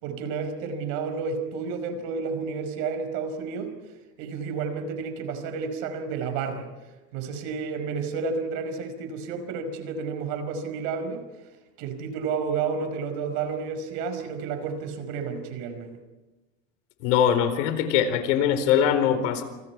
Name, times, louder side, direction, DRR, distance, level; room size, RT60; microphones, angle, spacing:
voice 1, 0.0-3.7 4.2-6.7 7.1-11.2 11.8-16.0, right 5 dB, 70° right, 8 dB, 5.0 m, -31 dB
voice 2, 17.0-19.4, left 9 dB, 80° left, 9 dB, 4.4 m, -22 dB
30.0 x 28.0 x 4.7 m, 1.1 s
cardioid pair, 150°, 35 cm